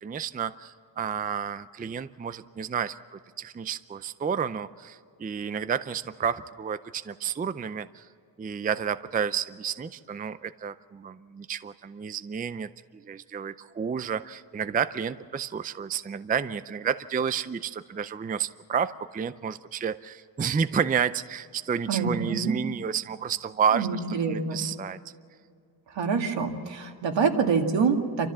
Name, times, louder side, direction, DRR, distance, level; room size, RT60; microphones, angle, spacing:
voice 1, 0.0-8.1 8.4-24.0 24.3-25.0, right 7 dB, 20° right, 13 dB, 0.4 m, -30 dB
voice 2, 21.9-22.6 23.7-24.6 25.9-28.3, right 5 dB, 80° right, 4 dB, 2.2 m, -26 dB
29.0 x 13.5 x 7.3 m, 2.3 s
wide cardioid pair, 145°, 44 cm